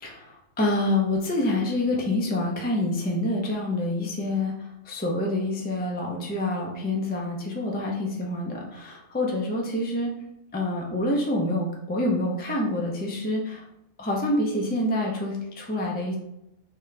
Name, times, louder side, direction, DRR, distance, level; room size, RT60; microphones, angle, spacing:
voice 1, 0.6-4.5 4.9-10.1 10.5-13.6 14.0-16.2, left 1 dB, 15° left, -1 dB, 0.3 m, -27 dB
3.6 x 2.8 x 3.3 m, 0.86 s
omnidirectional pair, 1.4 m